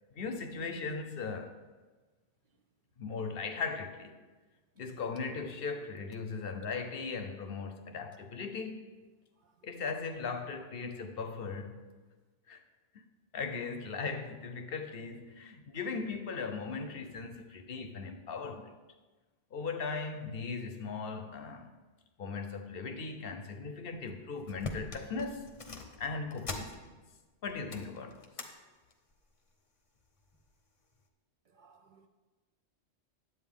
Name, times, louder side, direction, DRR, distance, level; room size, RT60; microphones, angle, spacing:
voice 1, 0.1-1.6 3.0-4.1 4.8-8.9 9.6-11.9 12.5-12.6 13.3-18.7 19.5-21.7 22.2-25.5 26.0-27.0 27.4-28.2, left 4 dB, 60° left, 0.9 m, -38 dB
sound 1, 24.0-24.1 24.4-27.2 27.5-28.5 28.9-29.2 30.0-30.5 31.0-31.1, left 2 dB, 35° left, 0.8 m, -44 dB
voice 2, 31.5-32.1, right 5 dB, 55° right, 0.6 m, -62 dB
9.7 x 8.0 x 3.6 m
omnidirectional pair, 1.1 m